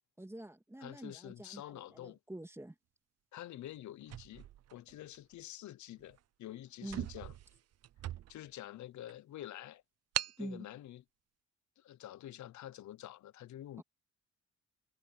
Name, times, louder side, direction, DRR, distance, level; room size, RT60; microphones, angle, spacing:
voice 1, 0.2-2.7 6.8-7.1 10.4-10.7 13.8-13.9, right 1 dB, 10° right, 2.9 m, -46 dB
voice 2, 0.8-2.2 3.3-7.3 8.3-9.8 10.4-11.0 11.8-13.8, left 13 dB, 70° left, 0.9 m, -48 dB
sound 1, 4.0-5.3 6.0-6.2 6.5-6.6 6.8-8.6 9.1-9.2 10.1-10.5, right 12 dB, 55° right, 0.6 m, -41 dB
cardioid pair, 90°, 30 cm